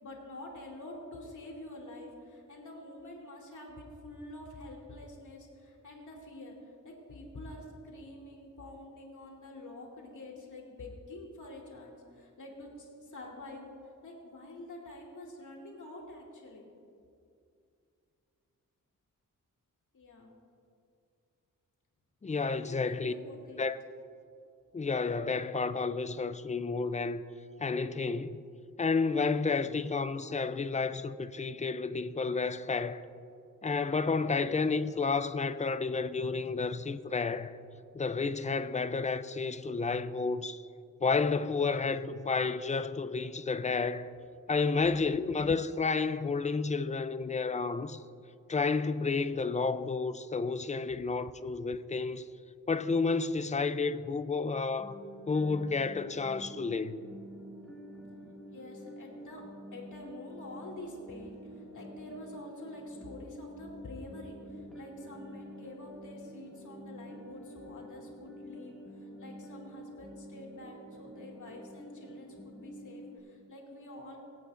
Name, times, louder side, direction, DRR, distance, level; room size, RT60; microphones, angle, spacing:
voice 1, 0.0-13.7 14.0-16.7 19.9-20.3 22.4-23.6 58.5-59.4 59.7-74.2, left 2 dB, 65° left, 2.5 m, -47 dB
voice 2, 22.2-23.1 23.6-23.8 24.7-27.2 27.6-28.4 28.8-33.0 33.6-37.6 37.9-40.6 41.0-44.1 44.5-48.0 48.5-52.2 52.7-55.0 55.3-56.9, left 4 dB, 20° left, 0.4 m, -31 dB
sound 1, 54.8-73.2, equal, ahead, 2.2 m, -48 dB
23.0 x 8.4 x 2.6 m
wide cardioid pair, 90°, 33 cm